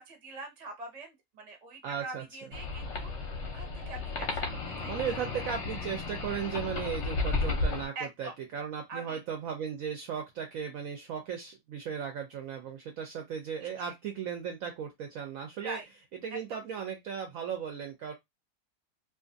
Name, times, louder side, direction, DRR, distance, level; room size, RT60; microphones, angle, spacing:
voice 1, 0.0-3.1 3.5-4.9 7.9-8.3 8.9-9.2 13.6-13.9 15.6-15.9 16.5-16.6, right 3 dB, 35° right, 0.7 m, -43 dB
voice 2, 1.8-2.2 4.9-15.8 16.2-18.1, right 7 dB, 70° right, 0.8 m, -36 dB
sound 1, 2.5-7.9, left 3 dB, 60° left, 0.8 m, -33 dB
2.5 x 2.5 x 2.5 m
omnidirectional pair, 1.7 m